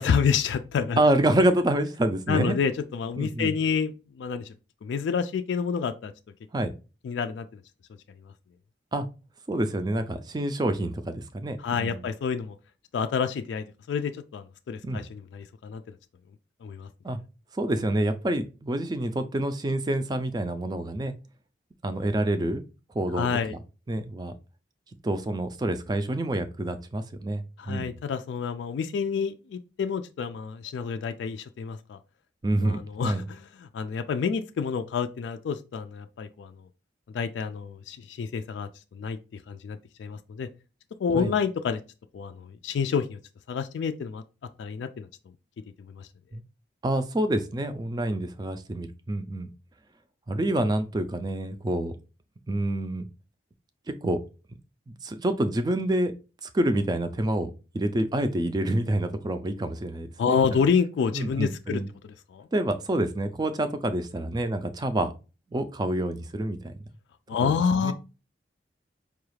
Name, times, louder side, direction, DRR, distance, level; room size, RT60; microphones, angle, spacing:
voice 1, 0.0-1.0 2.3-4.5 4.8-6.1 7.0-7.6 11.6-12.6 12.9-15.8 16.6-16.9 23.1-23.5 27.6-32.0 32.6-36.5 37.1-39.2 39.5-40.5 41.0-41.8 42.1-43.2 43.5-44.2 44.6-45.1 46.0-46.1 60.2-62.5 67.3-67.9, left 6 dB, 80° left, 0.3 m, -28 dB
voice 2, 1.0-2.5 3.2-3.5 6.5-6.7 8.9-9.1 9.5-12.1 14.8-15.0 17.0-17.2 17.6-21.1 21.8-22.6 22.9-23.6 23.9-24.3 25.0-28.0 32.4-33.3 41.2-41.3 46.3-46.4 46.8-49.5 50.3-51.9 52.5-53.1 54.0-54.2 54.9-56.1 56.4-60.6 61.1-61.9 62.5-65.1 65.5-66.7 67.4-67.9, right 1 dB, 20° right, 0.3 m, -27 dB
4.8 x 2.3 x 3.1 m
head